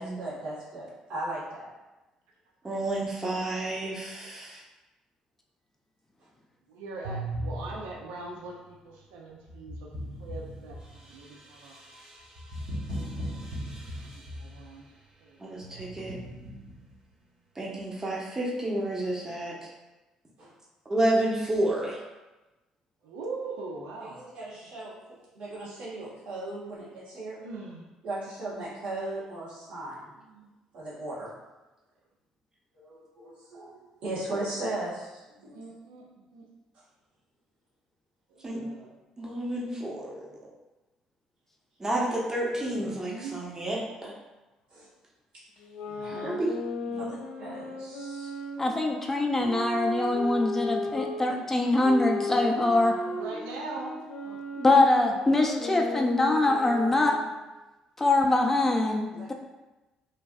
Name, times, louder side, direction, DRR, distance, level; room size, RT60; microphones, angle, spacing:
voice 1, 0.0-1.7 20.4-20.5 24.0-24.9 25.3-27.4 28.0-30.1 30.7-31.3 32.7-35.6 44.7-44.9 47.0-48.3 59.1-59.3, right 2 dB, 65° right, -7 dB, 1.4 m, -37 dB
voice 2, 2.6-4.6 15.4-16.2 17.6-19.7 20.9-22.0 38.4-38.6 39.2-40.2 41.8-44.1 46.0-46.6, right 1 dB, 20° right, -4 dB, 0.8 m, -30 dB
voice 3, 6.7-11.8 14.0-14.9 15.2-15.8 23.0-24.2 27.4-27.8 30.2-30.5 35.4-36.0 36.3-36.5 38.3-38.9 42.6-43.5 45.9-46.4 46.9-47.1 53.1-54.0 54.2-54.4, right 3 dB, 85° right, -2 dB, 0.4 m, -41 dB
sound 1, 7.0-8.2 9.5-14.8 15.6-16.9, equal, 45° right, 1.0 m, -38 dB
sound 2, 45.6-51.2 51.8-57.4, left 2 dB, 75° left, 0.4 m, -35 dB
voice 4, 48.6-53.0 54.6-57.2 58.0-59.3, left 2 dB, 10° left, 0 dB, 0.4 m, -23 dB
3.1 x 2.6 x 2.3 m, 1.1 s
hypercardioid pair, 60°, 2 cm